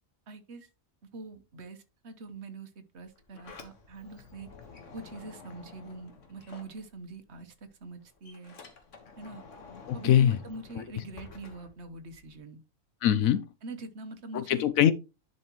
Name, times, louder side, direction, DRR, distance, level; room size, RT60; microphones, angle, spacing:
voice 1, 0.3-0.7 1.1-4.5 4.9-8.6 9.2-9.4 9.9-12.6 13.6-14.7, right 2 dB, 55° right, 1.3 m, -44 dB
Sliding door, 3.0-7.3 7.6-12.4, left 5 dB, 60° left, 1.6 m, -50 dB
voice 2, 9.9-10.4 10.8-10.9 13.0-13.4 14.3-14.9, left 10 dB, 75° left, 1.0 m, -23 dB
10.5 x 5.5 x 3.0 m
omnidirectional pair, 1.5 m